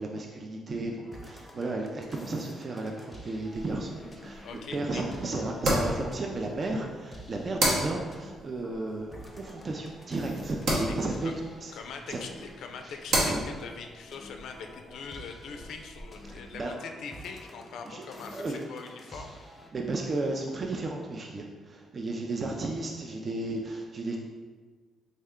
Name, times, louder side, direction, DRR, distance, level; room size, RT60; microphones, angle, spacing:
voice 1, 0.0-11.3 11.6-11.7 12.1-12.2 12.8-12.9 13.2-13.4 16.2-16.7 17.8-18.1 18.3-18.6 19.1-19.3 19.7-24.2, right 2 dB, 40° right, 1 dB, 0.3 m, -34 dB
sound 1, 1.0-19.7, equal, 25° left, 0.5 m, -49 dB
sound 2, 3.5-16.3, right 1 dB, 80° right, 0.9 m, -34 dB
voice 2, 4.4-5.0 10.8-10.9 11.2-11.3 11.7-19.4, left 5 dB, 75° left, 5 dB, 0.3 m, -42 dB
3.6 x 2.1 x 3.5 m, 1.4 s
cardioid pair, 90°, 0 cm